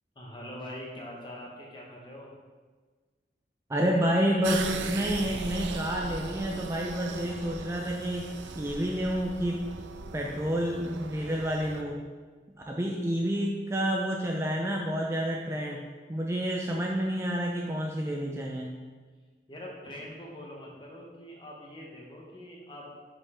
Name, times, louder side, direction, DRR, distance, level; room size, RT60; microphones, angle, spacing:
voice 1, 0.1-2.3 19.5-22.9, left 1 dB, 25° left, -2 dB, 1.0 m, -43 dB
voice 2, 3.7-8.3 8.6-9.6 10.1-12.0 12.5-15.8 16.1-18.7, equal, 15° right, -1 dB, 0.4 m, -29 dB
sound 1, 4.4-11.8, right 4 dB, 85° right, 0.4 m, -38 dB
5.3 x 4.5 x 4.2 m, 1.4 s
head